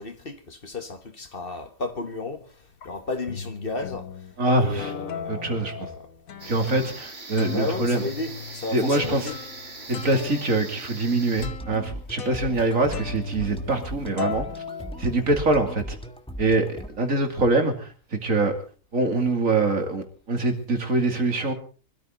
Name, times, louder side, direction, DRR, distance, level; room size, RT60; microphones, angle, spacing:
voice 1, 0.0-4.3 4.6-6.1 7.5-9.4, left 3 dB, 40° left, 1.7 m, -33 dB
sound 1, 1.8-2.2 2.8-2.9 3.3-4.3 4.8-7.0 7.4-13.9 14.2-15.6, left 6 dB, 80° left, 1.6 m, -37 dB
voice 2, 4.4-4.9 5.3-5.9 6.4-8.0 8.7-9.3 9.9-14.5 15.0-16.0 16.4-18.5 18.9-21.5, right 2 dB, 70° right, 3.2 m, -24 dB
sound 2, 6.4-11.5, right 3 dB, 50° right, 2.7 m, -41 dB
sound 3, 11.4-16.9, equal, 5° left, 1.5 m, -38 dB
25.0 x 13.5 x 4.0 m
omnidirectional pair, 1.4 m